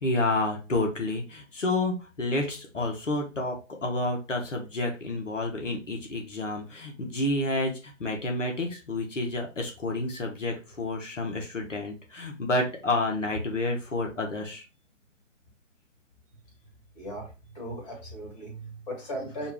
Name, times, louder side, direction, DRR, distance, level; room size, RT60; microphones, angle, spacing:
voice 1, 0.0-14.6, left 2 dB, 70° left, 1 dB, 1.2 m, -29 dB
voice 2, 16.9-19.5, right 1 dB, 35° left, -1 dB, 1.8 m, -37 dB
4.6 x 2.3 x 3.4 m, 0.31 s
figure-of-eight pair, 135°, 39 cm